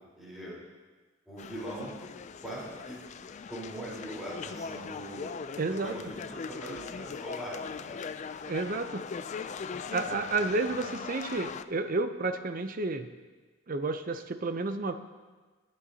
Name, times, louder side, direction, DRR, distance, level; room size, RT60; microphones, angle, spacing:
voice 1, 0.2-0.6 1.3-2.0 2.4-3.0 3.5-8.0 9.6-9.8 10.0-10.8, right 1 dB, ahead, -8 dB, 3.9 m, -41 dB
sound 1, 1.4-11.6, left 5 dB, 35° left, 0.3 m, -40 dB
voice 2, 5.6-6.1 8.4-9.1 9.9-13.1 13.7-14.9, right 3 dB, 45° right, 9 dB, 0.6 m, -31 dB
20.0 x 9.7 x 2.8 m, 1.3 s
head